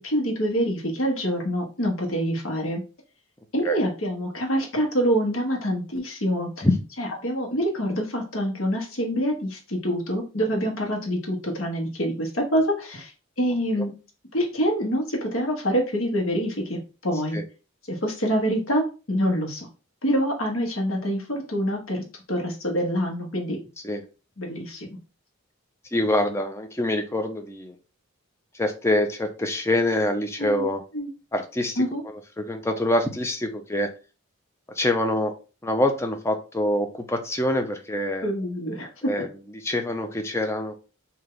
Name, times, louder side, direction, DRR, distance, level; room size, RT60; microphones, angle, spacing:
voice 1, 0.0-2.8 3.5-6.7 7.0-13.1 13.4-13.9 14.3-17.4 17.9-19.7 20.0-22.0 22.3-23.6 24.4-24.9 30.4-30.7 30.9-31.1 31.8-32.0 38.2-38.9 39.2-39.3, equal, 70° left, 1 dB, 1.3 m, -26 dB
voice 2, 25.9-27.8 28.6-30.8 31.3-33.9 34.8-35.3 35.6-38.3 39.0-39.3 39.5-40.7, left 1 dB, 15° left, 5 dB, 0.5 m, -25 dB
3.3 x 2.8 x 3.8 m, 0.33 s
head